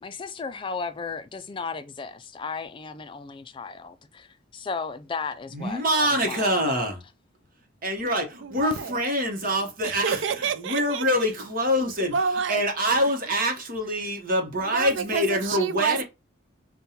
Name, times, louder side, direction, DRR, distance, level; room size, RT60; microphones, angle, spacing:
voice 1, 0.0-6.9, left 5 dB, 25° left, 0.3 m, -35 dB
voice 2, 5.5-7.0 7.8-10.2 10.6-12.1 12.5-16.0, equal, 45° right, 0.9 m, -25 dB
voice 3, 8.4-9.0 9.8-11.0 12.0-12.6 13.0-13.1 14.6-16.0, right 6 dB, 70° right, 0.4 m, -29 dB
5.2 x 2.2 x 2.8 m
head